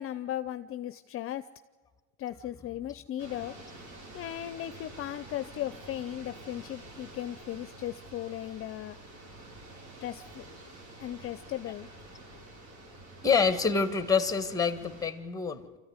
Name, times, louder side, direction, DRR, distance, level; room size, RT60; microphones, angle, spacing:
voice 1, 0.0-1.4 2.2-3.5 4.1-9.0 10.0-10.4 11.0-11.9, left 12 dB, 45° left, 13 dB, 0.6 m, -37 dB
sound 1, 3.2-15.1, right 2 dB, 65° right, 6.8 m, -48 dB
voice 2, 13.2-15.8, left 5 dB, 10° left, 11 dB, 1.5 m, -27 dB
25.5 x 14.5 x 9.6 m, 1.4 s
supercardioid pair, 115°, 31 cm